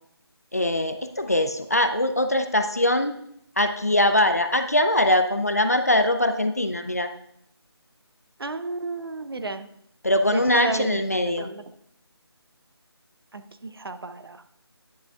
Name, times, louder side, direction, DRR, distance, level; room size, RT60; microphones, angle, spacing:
voice 1, 0.5-3.2 3.6-7.1 10.0-11.5, left 1 dB, 35° left, 8 dB, 0.4 m, -22 dB
voice 2, 8.4-9.7 10.3-11.0 11.4-11.6 13.3-14.4, right 3 dB, 60° right, 10 dB, 0.6 m, -32 dB
10.0 x 7.5 x 2.3 m, 0.71 s
figure-of-eight pair, 180°, 14 cm